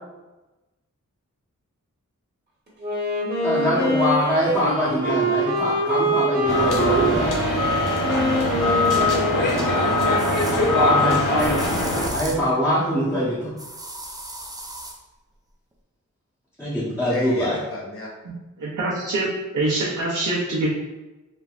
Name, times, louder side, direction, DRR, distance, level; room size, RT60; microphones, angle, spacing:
Wind instrument woodwind instrument, 2.8-10.6, equal, 30° right, 1.1 m, -25 dB
voice 1, 3.4-7.4 10.5-11.5 12.1-13.5 16.6-17.6, equal, 10° left, -11 dB, 0.8 m, -23 dB
sound 1, 6.5-12.1, left 2 dB, 80° left, 0.7 m, -22 dB
voice 2, 8.0-11.4 17.1-18.1, equal, 45° left, -3 dB, 0.9 m, -32 dB
sound 2, 10.2-10.6 11.4-12.5 13.6-15.0, right 1 dB, 10° right, 0.4 m, -35 dB
voice 3, 18.6-19.3 19.5-20.7, right 2 dB, 70° right, -7 dB, 0.7 m, -24 dB
3.1 x 2.2 x 2.4 m, 1.1 s
cardioid pair, 50°, 31 cm